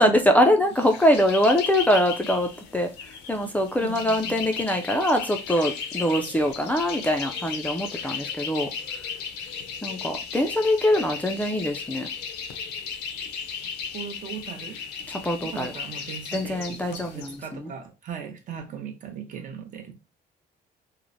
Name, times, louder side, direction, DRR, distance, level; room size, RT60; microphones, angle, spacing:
voice 1, 0.0-2.9 3.3-8.7 9.8-12.1 15.1-15.7 16.3-17.3 17.6-17.7, equal, 10° left, 0.3 m, -23 dB
sound 1, 0.7-17.3, left 6 dB, 85° left, 0.5 m, -35 dB
voice 2, 3.8-4.4 13.9-14.8 15.4-19.9, right 8 dB, 50° right, 0.7 m, -38 dB
3.0 x 2.0 x 2.5 m
cardioid pair, 110°, 17 cm